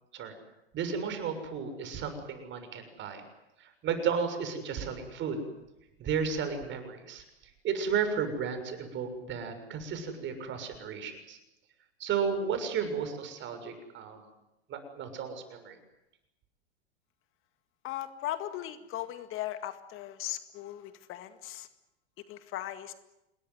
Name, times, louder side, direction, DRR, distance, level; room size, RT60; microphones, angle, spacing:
voice 1, 0.7-3.2 3.6-5.4 6.0-7.2 7.6-11.4 12.0-14.2 14.7-15.8, right 6 dB, 35° right, 8 dB, 6.7 m, -33 dB
voice 2, 17.8-21.7 22.3-22.9, left 13 dB, 40° left, 10 dB, 2.0 m, -38 dB
27.0 x 21.0 x 9.5 m, 0.90 s
hypercardioid pair, 105°, 32 cm